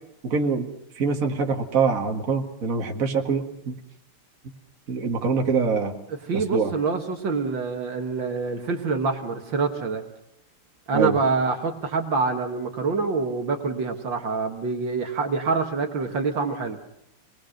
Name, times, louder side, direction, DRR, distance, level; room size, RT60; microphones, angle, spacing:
voice 1, 0.2-0.7 1.0-3.7 4.9-5.9 6.5-6.7 10.9-11.2, right 5 dB, 40° right, 2 dB, 2.2 m, -24 dB
voice 2, 6.1-10.0 10.9-16.8, right 4 dB, 60° right, 4 dB, 2.3 m, -26 dB
26.0 x 20.5 x 6.6 m, 0.77 s
omnidirectional pair, 2.4 m